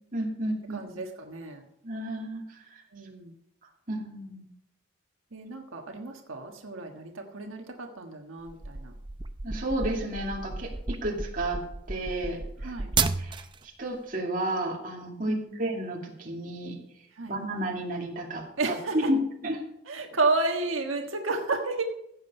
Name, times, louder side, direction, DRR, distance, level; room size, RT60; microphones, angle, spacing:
voice 1, 0.1-0.9 1.8-2.4 2.7-2.8 3.9-4.5 9.4-11.6 11.9-12.7 13.2-16.8 17.2-19.2 19.4-19.6, right 1 dB, 40° right, 0 dB, 2.4 m, -32 dB
voice 2, 0.7-1.6 2.9-3.3 5.3-8.9 12.6-12.9 15.2-15.6 17.1-17.3 18.6-19.1 19.9-21.8, right 3 dB, 85° right, 3 dB, 1.4 m, -31 dB
sound 1, 8.5-13.6, right 4 dB, 25° right, 0.5 m, -32 dB
15.5 x 7.6 x 5.4 m, 0.80 s
head